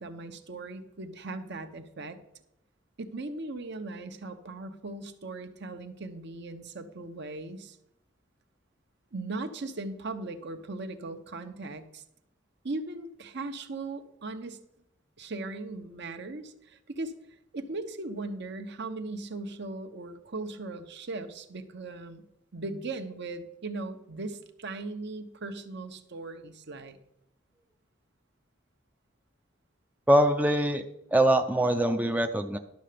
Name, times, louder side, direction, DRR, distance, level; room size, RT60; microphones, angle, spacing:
voice 1, 0.0-2.2 3.0-7.8 9.1-12.0 12.6-14.6 15.2-17.1 17.5-22.2 22.5-27.0, right 2 dB, 60° right, 7 dB, 1.0 m, -38 dB
voice 2, 30.1-30.8 31.1-32.6, right 1 dB, 10° right, 4 dB, 0.5 m, -23 dB
11.5 x 6.7 x 5.1 m, 0.83 s
head